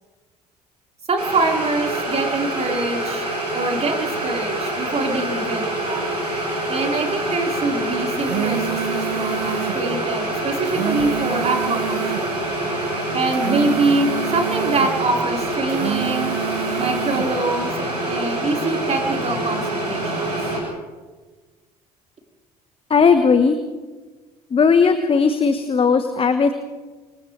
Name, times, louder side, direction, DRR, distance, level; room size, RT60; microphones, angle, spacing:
voice 1, 1.1-3.3 3.5-6.1 6.7-12.3 13.1-16.3 16.8-20.4, right 3 dB, 30° right, 0 dB, 5.1 m, -24 dB
sound 1, 1.2-20.6, right 1 dB, 85° right, 7.1 m, -26 dB
sound 2, 8.0-9.8 10.5-12.3 13.2-15.0 15.6-17.3, right 12 dB, 60° right, 0.9 m, -28 dB
voice 2, 22.9-23.6 24.5-26.5, left 5 dB, 30° left, 9 dB, 1.5 m, -16 dB
29.0 x 26.0 x 3.5 m, 1.3 s
figure-of-eight pair, 55°, 20 cm